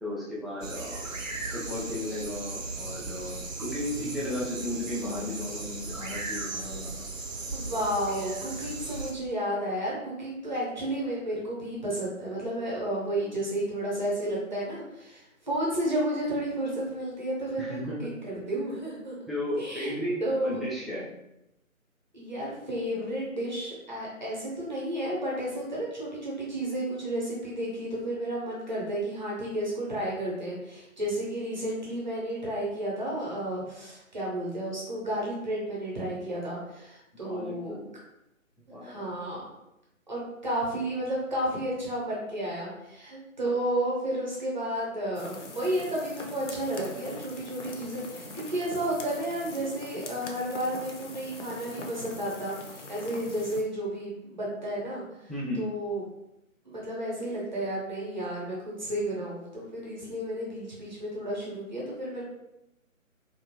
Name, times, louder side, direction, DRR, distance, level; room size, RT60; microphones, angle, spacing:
voice 1, 0.0-1.1 1.5-7.1 17.6-18.1 19.3-21.1 37.2-37.9 38.7-39.0 55.3-55.7, left 1 dB, ahead, -8 dB, 0.3 m, -34 dB
sound 1, 0.6-9.1, right 3 dB, 65° right, 0.6 m, -37 dB
voice 2, 7.5-19.2 19.6-19.9 20.2-20.6 22.1-37.7 38.8-39.4 40.1-55.3 55.6-56.0 56.6-62.2, right 1 dB, 35° right, -5 dB, 0.7 m, -32 dB
sound 2, 45.1-53.6, left 2 dB, 60° left, 0.5 m, -43 dB
2.6 x 2.4 x 2.7 m, 0.88 s
figure-of-eight pair, 150°, 41 cm